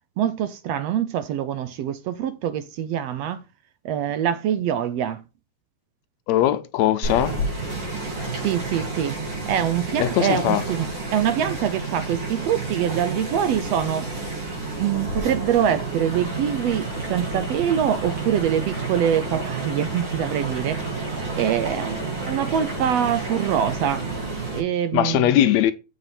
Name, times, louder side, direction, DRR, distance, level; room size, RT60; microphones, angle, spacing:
voice 1, 0.2-3.4 3.8-5.2 8.4-9.1 9.4-14.1 14.8-21.0 21.4-24.0 24.5-25.4, right 9 dB, 70° right, 1.7 m, -24 dB
voice 2, 6.3-7.3 10.0-10.6 24.9-25.7, left 12 dB, 75° left, 1.8 m, -20 dB
sound 1, 7.0-24.6, right 3 dB, 50° right, 5.0 m, -30 dB
7.9 x 5.6 x 4.1 m
omnidirectional pair, 3.3 m